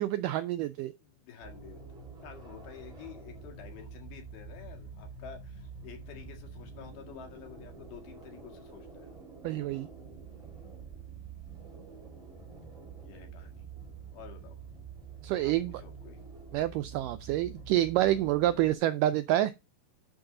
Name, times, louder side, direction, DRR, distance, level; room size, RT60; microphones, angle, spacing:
voice 1, 0.0-0.9 9.4-9.9 15.2-15.8 16.5-19.5, right 14 dB, 85° right, 1.9 m, -28 dB
voice 2, 1.0-9.1 13.0-13.7 14.1-14.6 15.4-16.2, left 9 dB, 80° left, 3.7 m, -50 dB
sound 1, 1.4-18.8, right 5 dB, 20° right, 4.0 m, -47 dB
10.5 x 4.7 x 3.8 m
omnidirectional pair, 4.3 m